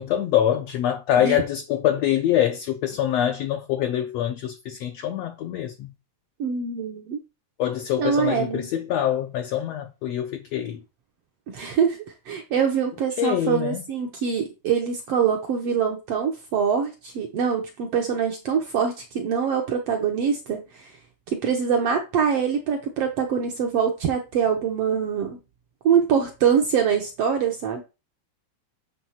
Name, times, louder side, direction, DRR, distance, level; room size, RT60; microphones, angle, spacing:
voice 1, 0.0-5.9 7.6-10.8 13.2-13.8, left 11 dB, 75° left, 1.5 m, -24 dB
voice 2, 6.4-7.2 8.0-8.7 11.5-20.9 21.3-25.4 25.8-27.8, right 7 dB, 70° right, 1.5 m, -24 dB
9.2 x 3.4 x 5.7 m
omnidirectional pair, 3.8 m